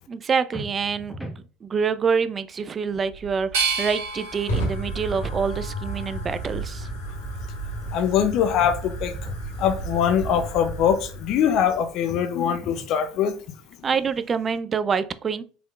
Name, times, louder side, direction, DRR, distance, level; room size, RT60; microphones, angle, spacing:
voice 1, 0.1-1.3 1.6-6.9 13.8-15.4, right 6 dB, 35° right, 0.4 m, -26 dB
sound 1, 0.5-1.4 4.6-5.5 8.6-9.5 12.1-13.0, equal, 5° left, 1.0 m, -39 dB
Fire, 2.9-11.9, right 2 dB, 80° left, 1.5 m, -33 dB
sound 2, 3.5-6.5 7.0-7.8, right 5 dB, 70° right, 1.4 m, -32 dB
voice 2, 7.9-9.1 9.6-13.3, left 8 dB, 55° left, 0.5 m, -22 dB
4.8 x 3.5 x 2.4 m
figure-of-eight pair, 65°, 0 cm